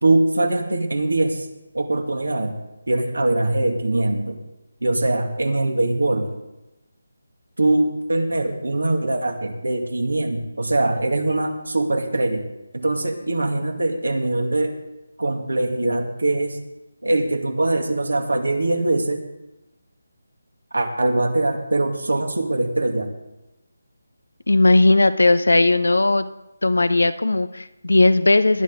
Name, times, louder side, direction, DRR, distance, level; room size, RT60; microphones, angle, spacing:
voice 1, 0.0-1.5 1.7-2.5 2.9-4.4 4.8-6.3 7.6-12.4 12.7-14.7 15.2-16.6 17.0-19.2 20.7-23.1, right 2 dB, 85° right, 4 dB, 2.4 m, -22 dB
voice 2, 24.5-26.3 26.6-28.6, left 2 dB, 80° left, 12 dB, 1.0 m, -17 dB
19.5 x 11.5 x 3.9 m, 0.99 s
figure-of-eight pair, 160°, 0 cm